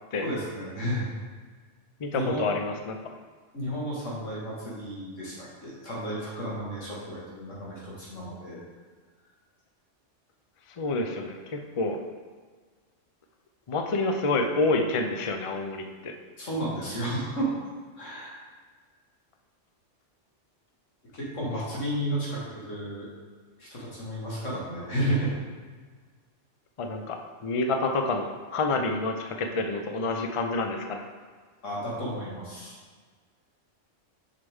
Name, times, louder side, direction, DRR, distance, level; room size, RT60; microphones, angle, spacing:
voice 1, 0.2-1.1 2.1-2.4 3.5-8.6 16.4-17.5 18.0-18.4 21.1-23.1 23.6-25.3 31.6-32.8, right 1 dB, 80° left, -6 dB, 2.3 m, -32 dB
voice 2, 2.0-3.0 10.8-12.0 13.7-16.1 26.8-27.2 27.4-31.1, left 3 dB, 45° left, 4 dB, 0.4 m, -28 dB
6.6 x 5.7 x 3.6 m, 1.5 s
omnidirectional pair, 1.3 m